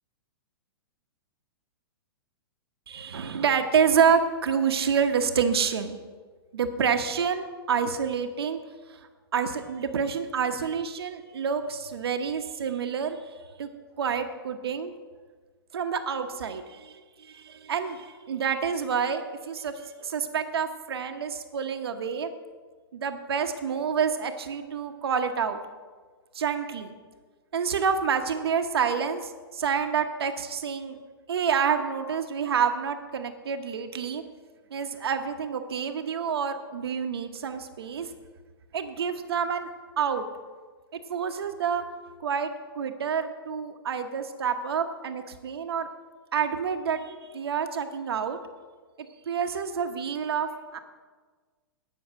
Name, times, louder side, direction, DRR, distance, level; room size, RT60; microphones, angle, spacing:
voice 1, 2.9-6.0 6.5-8.6 8.9-9.0 9.3-13.3 13.6-13.7 14.0-14.9 15.7-16.9 17.2-22.3 22.9-25.6 26.3-27.0 27.5-31.0 31.3-34.2 34.7-38.1 38.7-39.7 40.0-40.3 41.1-41.8 42.2-45.9 46.3-48.4 49.3-50.8, right 6 dB, 75° right, 6 dB, 1.0 m, -28 dB
10.0 x 6.4 x 8.9 m, 1.4 s
hypercardioid pair, 115°, 13 cm